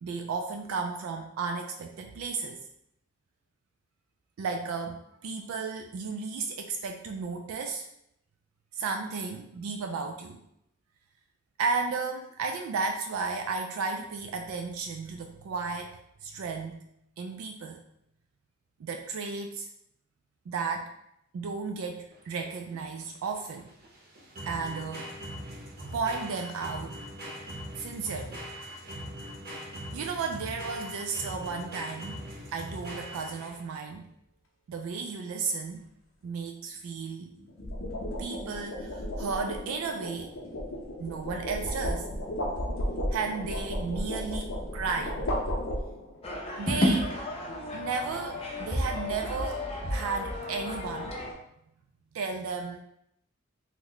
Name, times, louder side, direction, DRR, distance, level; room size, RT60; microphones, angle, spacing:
voice 1, 0.0-2.6 4.4-7.9 8.7-10.4 11.6-15.9 16.2-16.8 17.2-17.8 18.8-19.7 20.5-20.9 21.3-23.7 24.5-25.1 25.9-27.0 27.8-28.4 29.6-29.7 29.9-32.2 32.5-34.1 34.7-35.9 36.2-37.3 38.2-40.3 41.0-42.0 43.1-45.2 46.6-49.6 49.9-51.2 52.1-52.8, right 4 dB, 85° right, 4 dB, 0.3 m, -34 dB
sound 1, 22.1-33.7, equal, 50° right, 0.7 m, -41 dB
sound 2, 31.9-32.2 37.4-46.3, equal, 70° left, 0.7 m, -34 dB
sound 3, 46.2-51.3, left 1 dB, 30° left, 0.5 m, -31 dB
3.0 x 2.1 x 3.8 m, 0.76 s
head